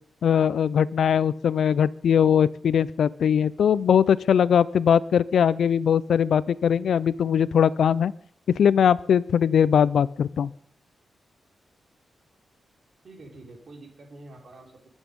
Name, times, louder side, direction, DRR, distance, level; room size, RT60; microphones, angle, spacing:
voice 1, 0.2-8.1 8.6-10.5, left 8 dB, 75° left, 19 dB, 0.5 m, -21 dB
voice 2, 13.0-14.9, right 2 dB, 55° right, 1 dB, 4.2 m, -46 dB
22.0 x 8.2 x 5.4 m, 0.70 s
wide cardioid pair, 105°, 0 cm